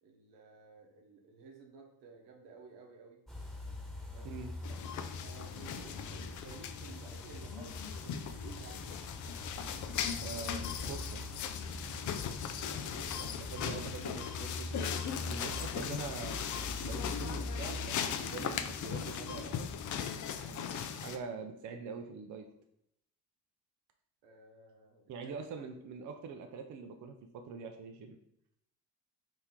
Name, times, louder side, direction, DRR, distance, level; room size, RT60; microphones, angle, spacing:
voice 1, 0.0-3.2 4.1-4.3 4.7-4.9 5.2-8.9 12.7-13.4 24.2-25.7 26.0-26.1, right 4 dB, 75° right, 2 dB, 1.0 m, -54 dB
sound 1, 3.3-20.0, left 2 dB, ahead, 1.3 m, -44 dB
sound 2, 4.6-21.2, left 8 dB, 45° left, 0.5 m, -39 dB
voice 2, 10.2-11.2 13.5-14.9 15.2-16.4 16.8-19.6 20.4-22.5 25.1-28.2, right 5 dB, 45° right, 5 dB, 0.6 m, -44 dB
4.2 x 3.0 x 3.6 m, 0.77 s
hypercardioid pair, 55°, 44 cm